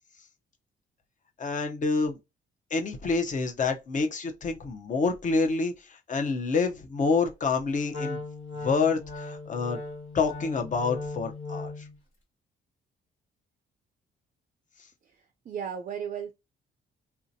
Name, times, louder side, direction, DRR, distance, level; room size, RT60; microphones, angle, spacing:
voice 1, 1.4-2.2 2.7-8.2 8.6-9.8 10.1-11.7, left 4 dB, 40° left, 0.7 m, -27 dB
Wind instrument woodwind instrument, 7.9-12.0, left 3 dB, 90° left, 2.1 m, -37 dB
voice 2, 15.5-16.3, right 8 dB, 40° right, 0.4 m, -34 dB
3.3 x 2.7 x 2.6 m
cardioid pair, 90°, 20 cm